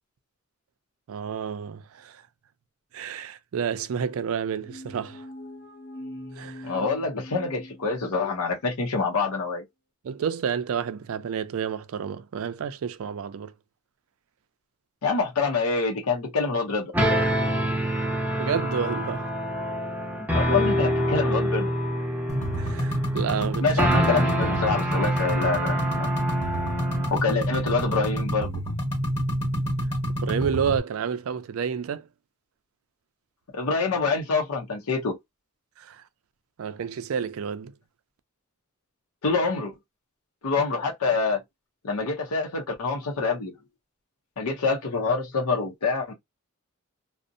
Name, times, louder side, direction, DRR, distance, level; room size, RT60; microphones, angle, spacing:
voice 1, 1.1-2.2 2.9-5.3 6.4-6.7 10.0-13.5 18.4-19.3 22.6-23.7 30.1-32.1 35.8-36.0 36.6-37.7, right 7 dB, 65° right, 0.4 m, -30 dB
sound 1, 4.6-8.4, left 1 dB, 55° left, 0.8 m, -42 dB
voice 2, 6.6-9.6 15.0-16.9 20.3-21.7 23.6-26.1 27.1-28.6 33.5-35.2 39.2-39.7 40.4-41.4 41.8-43.5 44.4-46.1, left 4 dB, 85° left, 0.6 m, -26 dB
sound 2, 16.9-27.1, equal, 10° right, 0.6 m, -26 dB
sound 3, 22.3-30.8, equal, 30° left, 1.0 m, -28 dB
2.5 x 2.0 x 2.5 m
head